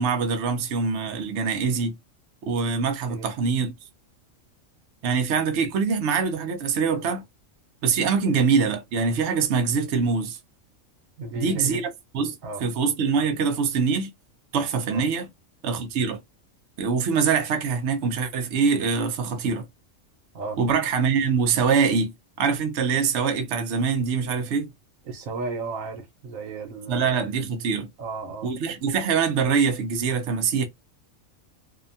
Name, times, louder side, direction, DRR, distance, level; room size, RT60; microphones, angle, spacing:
voice 1, 0.0-1.9 2.4-3.7 5.0-7.2 7.8-10.4 11.4-11.8 12.1-14.1 14.5-15.3 15.6-16.2 16.8-19.6 20.6-22.1 22.4-24.7 26.9-27.9 28.4-30.6, right 5 dB, 65° right, 0.8 m, -24 dB
voice 2, 11.2-11.9 12.4-12.7 14.9-15.1 20.3-20.6 25.1-27.1 28.0-28.5, right 3 dB, 90° right, 1.1 m, -34 dB
2.7 x 2.1 x 2.6 m
omnidirectional pair, 1.4 m